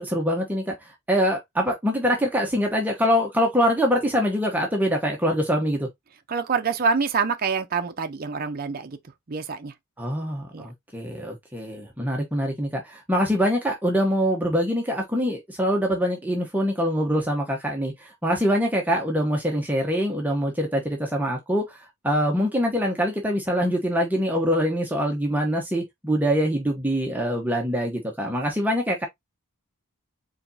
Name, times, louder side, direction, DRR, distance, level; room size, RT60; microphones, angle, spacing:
voice 1, 0.0-5.9 10.0-29.0, equal, 10° right, 0.9 m, -24 dB
voice 2, 6.3-9.0 9.3-9.7 10.5-10.7, right 5 dB, 40° right, 0.6 m, -26 dB
4.9 x 4.0 x 2.7 m
head